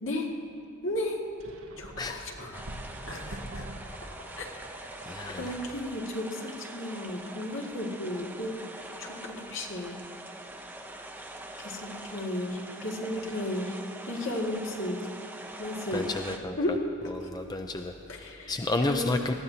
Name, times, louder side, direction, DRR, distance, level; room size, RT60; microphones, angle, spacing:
voice 1, 0.0-0.3 0.8-1.3 1.8-2.7 3.1-3.6 4.4-4.5 5.3-8.6 9.0-10.0 11.6-13.7 14.1-15.0 15.6-16.2 16.6-16.9 17.2-17.3 18.1-18.6 18.9-19.3, left 1 dB, 70° left, -1 dB, 1.9 m, -34 dB
sound 1, 1.4-5.9, right 1 dB, 80° right, 1.1 m, -44 dB
sound 2, 2.5-16.4, right 1 dB, 10° right, 0.7 m, -43 dB
voice 2, 5.1-5.6 15.9-16.6 17.1-19.3, left 2 dB, 20° left, 5 dB, 0.4 m, -31 dB
20.0 x 15.0 x 2.8 m, 2.8 s
head